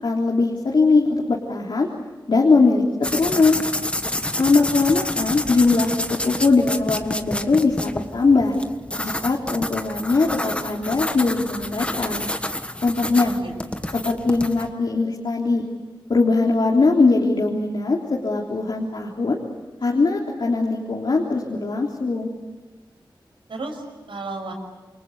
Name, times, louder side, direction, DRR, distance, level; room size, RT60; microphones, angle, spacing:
voice 1, 0.0-1.9 2.3-2.8 3.1-3.6 4.4-8.5 9.0-12.2 12.8-13.3 13.9-15.7 16.1-19.4 19.8-22.3, left 3 dB, 65° left, -1 dB, 3.4 m, -20 dB
sound 1, 3.0-14.7, left 1 dB, 15° left, 1.5 m, -29 dB
voice 2, 13.2-13.9 23.5-24.5, right 2 dB, 85° right, 3 dB, 6.3 m, -34 dB
28.5 x 24.0 x 8.4 m, 1.2 s
wide cardioid pair, 90°, 9 cm